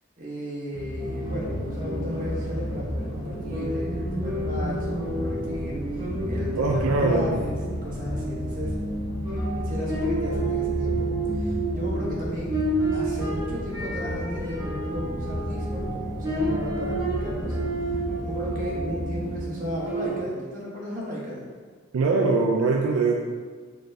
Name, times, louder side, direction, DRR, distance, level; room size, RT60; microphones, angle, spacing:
voice 1, 0.2-8.8 9.6-12.5 12.9-17.6 17.9-21.4, equal, 40° right, -5 dB, 0.9 m, -35 dB
sound 1, 0.7-19.4, equal, 15° left, 1.1 m, -33 dB
sound 2, 1.0-20.2, right 2 dB, 15° right, 1.1 m, -31 dB
voice 2, 6.6-7.3 21.9-23.2, right 3 dB, 80° right, 0 dB, 0.3 m, -22 dB
4.2 x 3.1 x 2.6 m, 1.5 s
head